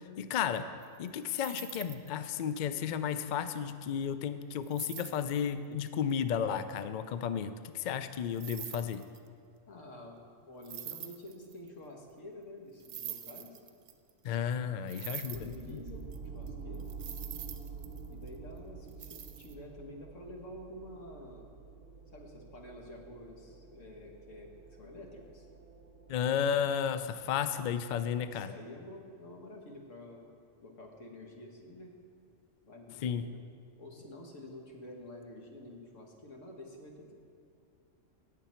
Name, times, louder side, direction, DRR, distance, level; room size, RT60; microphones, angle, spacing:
voice 1, 0.2-0.7 1.0-9.0 14.2-15.8 26.1-28.5 33.0-33.3, left 8 dB, 60° left, 12 dB, 0.5 m, -33 dB
sound 1, 0.8-2.1 4.6-5.3 8.3-9.3 10.6-11.7 12.8-14.1 14.9-16.2 16.5-16.6 16.7-18.4 18.9-19.5, right 9 dB, 75° right, 1.0 m, -44 dB
voice 2, 9.7-13.6 14.8-16.0 16.3-16.9 18.1-21.5 22.1-25.5 28.3-30.3 30.6-32.0 32.6-33.4 33.8-37.1, left 1 dB, 85° left, 1 dB, 1.7 m, -49 dB
sound 2, 15.3-27.3, right 5 dB, 50° right, 0.6 m, -48 dB
17.5 x 6.9 x 4.4 m, 2.3 s
omnidirectional pair, 1.3 m